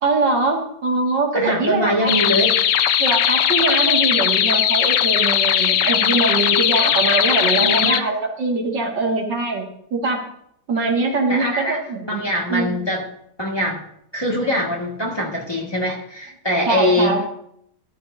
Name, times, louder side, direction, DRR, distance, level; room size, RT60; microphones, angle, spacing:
voice 1, 0.0-2.1 3.0-10.2 10.7-12.2 12.5-12.8 16.7-17.2, right 3 dB, 85° right, -1 dB, 2.9 m, -22 dB
voice 2, 1.3-2.6 7.6-8.1 11.3-11.8 12.1-13.0 13.4-13.8 14.1-17.2, equal, 15° left, -3 dB, 2.1 m, -23 dB
sound 1, 2.1-8.0, left 10 dB, 85° left, 1.3 m, -18 dB
14.5 x 13.5 x 2.8 m, 0.72 s
omnidirectional pair, 1.8 m